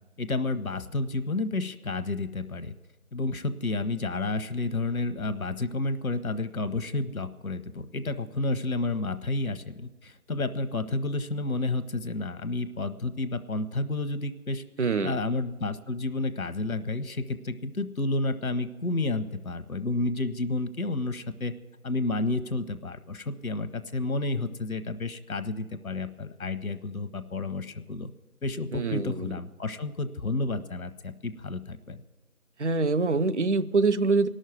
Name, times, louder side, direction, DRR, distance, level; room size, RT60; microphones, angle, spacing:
voice 1, 0.2-2.7 3.1-14.6 15.0-21.5 21.8-28.1 28.4-32.0, left 2 dB, 75° left, 10 dB, 0.9 m, -30 dB
voice 2, 14.8-15.2 28.7-29.3 32.6-34.3, right 4 dB, 55° right, 14 dB, 0.5 m, -25 dB
18.5 x 6.4 x 9.2 m, 1.2 s
figure-of-eight pair, 170°, 43 cm